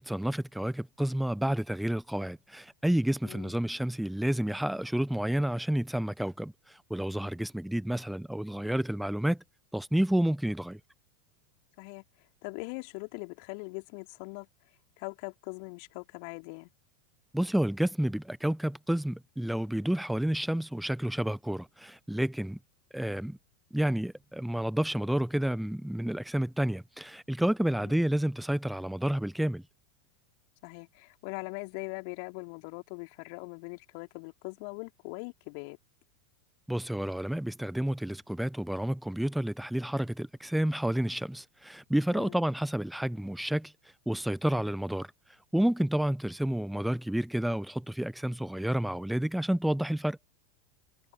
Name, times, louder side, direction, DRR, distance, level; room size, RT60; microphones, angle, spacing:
voice 1, 0.0-6.5 6.9-9.4 9.7-10.8 17.3-22.6 22.9-23.4 23.7-29.6 36.7-43.7 44.1-45.1 45.5-50.2, right 1 dB, ahead, 1.1 m, -30 dB
voice 2, 11.8-14.5 15.0-16.7 27.7-28.0 30.6-35.8 42.1-42.4, left 40 dB or more, 50° left, 3.4 m, -41 dB
figure-of-eight pair, 85°, 0 cm